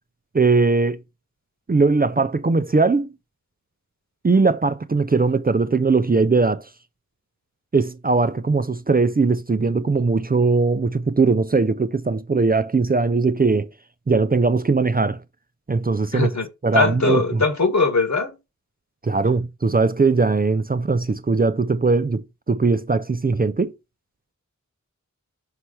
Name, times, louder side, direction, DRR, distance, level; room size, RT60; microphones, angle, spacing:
voice 1, 0.3-1.0 1.7-3.1 4.2-6.6 7.7-13.7 14.1-15.2 15.7-16.3 16.6-17.4 19.0-23.7, right 4 dB, 30° right, 0.5 m, -20 dB
voice 2, 16.1-16.5 16.7-18.3, left 4 dB, 65° left, 1.7 m, -20 dB
5.7 x 3.2 x 5.5 m
wide cardioid pair, 55°, 30 cm